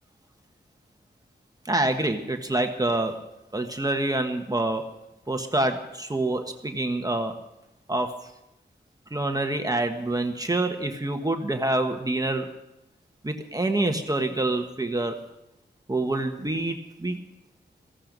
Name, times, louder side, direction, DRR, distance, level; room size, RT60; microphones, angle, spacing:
voice 1, 1.6-3.2 3.5-4.9 5.3-7.3 7.9-8.1 9.1-12.5 13.2-15.2 15.9-17.2, right 2 dB, 20° right, 4 dB, 1.4 m, -26 dB
16.5 x 15.5 x 5.3 m, 0.88 s
wide cardioid pair, 110°, 19 cm